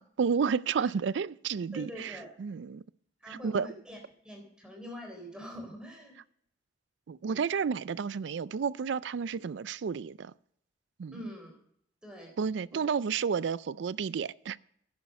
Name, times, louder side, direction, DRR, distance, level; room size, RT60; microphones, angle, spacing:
voice 1, 0.0-2.8 3.3-3.7 7.1-10.3 11.0-11.2 12.4-14.6, right 6 dB, 75° right, 0.4 m, -31 dB
voice 2, 1.7-2.3 3.2-4.0 4.2-6.2 11.1-11.6 12.0-12.3 12.7-12.8, equal, 5° right, 3.7 m, -44 dB
10.5 x 10.0 x 5.3 m
head